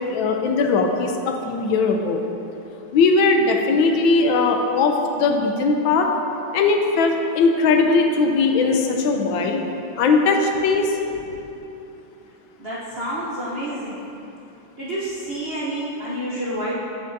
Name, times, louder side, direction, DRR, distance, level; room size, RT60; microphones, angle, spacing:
voice 1, 0.0-2.2 2.9-6.1 6.5-9.6 10.0-11.0, left 4 dB, 80° left, 3 dB, 1.4 m, -19 dB
voice 2, 12.6-14.0 14.8-16.7, right 1 dB, 50° right, -8 dB, 0.7 m, -28 dB
7.9 x 7.6 x 2.6 m, 2.9 s
omnidirectional pair, 2.1 m